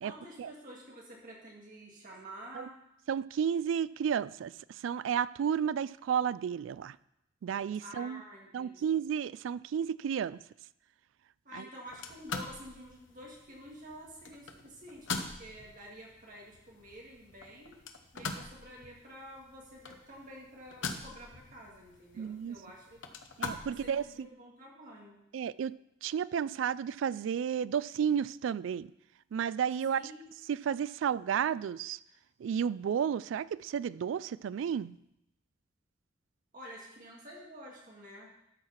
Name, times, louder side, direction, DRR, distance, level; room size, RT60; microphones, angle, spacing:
voice 1, 0.0-2.8 7.8-9.0 11.4-17.8 18.1-23.0 23.7-25.2 29.9-30.2 36.5-38.3, equal, 45° right, -2 dB, 2.0 m, -49 dB
voice 2, 3.1-7.0 7.4-8.2 8.5-10.4 11.5-11.6 22.2-22.6 23.4-24.3 25.3-25.7 26.0-28.9 29.3-30.0 30.5-32.0 32.4-35.0, right 8 dB, 80° right, 19 dB, 0.3 m, -32 dB
sound 1, 11.9-24.2, left 4 dB, 75° left, 0.9 m, -43 dB
12.5 x 4.7 x 5.7 m, 0.84 s
head